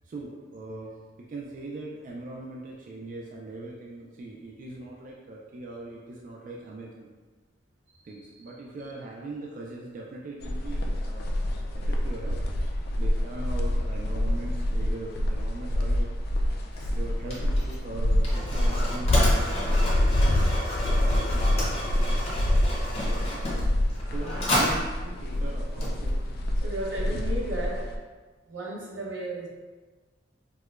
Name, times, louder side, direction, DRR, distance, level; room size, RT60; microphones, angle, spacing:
voice 1, 0.0-7.1 8.0-11.4 11.8-12.4 13.0-16.1 17.0-20.0 21.0-21.9 22.9-23.4 24.1-26.3 27.0-27.2, right 2 dB, 45° right, -2 dB, 0.3 m, -40 dB
sound 1, 10.4-28.0, left 1 dB, 55° left, 0.4 m, -26 dB
Mechanisms, 16.7-26.4, left 1 dB, 35° left, 0.7 m, -32 dB
voice 2, 26.6-27.8 28.5-29.5, right 1 dB, 75° right, -3 dB, 0.8 m, -34 dB
4.6 x 2.1 x 2.4 m, 1.4 s
head